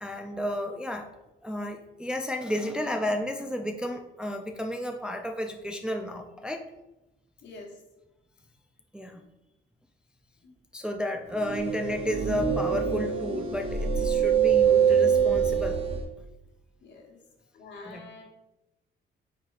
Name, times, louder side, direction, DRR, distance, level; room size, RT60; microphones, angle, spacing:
voice 1, 0.0-1.1 1.4-6.6 8.9-9.2 10.7-15.8 17.8-18.1, left 1 dB, 5° right, 4 dB, 0.3 m, -32 dB
sound 1, 11.4-16.0, right 7 dB, 30° right, 0.7 m, -24 dB
voice 2, 16.8-17.2 17.5-18.2, left 3 dB, 65° left, 0 dB, 1.1 m, -46 dB
4.7 x 4.1 x 2.4 m, 0.97 s
cardioid pair, 90°, 20 cm